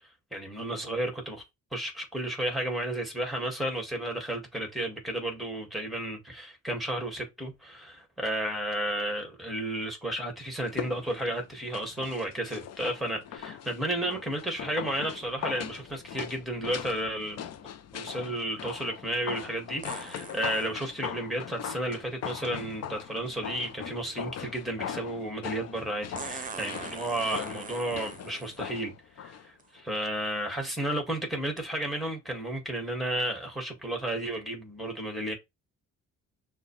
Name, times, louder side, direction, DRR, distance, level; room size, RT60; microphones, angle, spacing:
voice 1, 0.3-1.4 1.7-17.5 17.9-35.3, right 1 dB, ahead, 2.0 m, -33 dB
sound 1, 10.6-29.5 29.8-29.9, left 9 dB, 55° left, 0.6 m, -40 dB
sound 2, 19.8-20.7 22.7-22.8 26.1-28.6 29.6-29.7 30.3-30.6 31.6-31.7, right 5 dB, 25° right, 0.8 m, -41 dB
6.2 x 2.4 x 3.2 m
cardioid pair, 90°, 30 cm